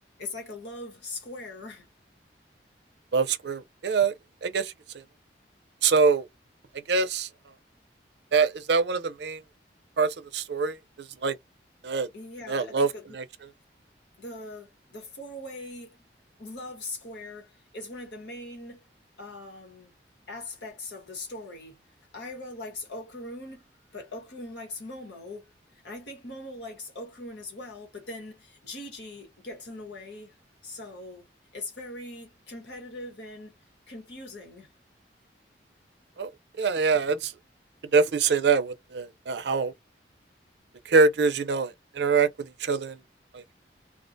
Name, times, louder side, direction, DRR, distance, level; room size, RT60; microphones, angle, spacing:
voice 1, 0.2-1.9 12.1-13.2 14.2-16.0 16.4-18.8 19.2-19.9 20.3-21.8 22.1-23.6 23.9-25.5 25.8-30.3 30.6-31.3 31.5-33.5 33.9-34.7, left 2 dB, 80° left, 1.2 m, -41 dB
voice 2, 3.1-4.1 4.4-5.0 5.8-6.3 6.9-7.3 8.3-9.4 10.0-11.4 11.8-12.1 12.5-12.9 13.1-13.2 36.2-36.3 36.6-37.3 37.9-39.7 40.9-43.0 43.3-43.5, right 4 dB, 75° right, 0.5 m, -24 dB
2.3 x 2.1 x 2.6 m
head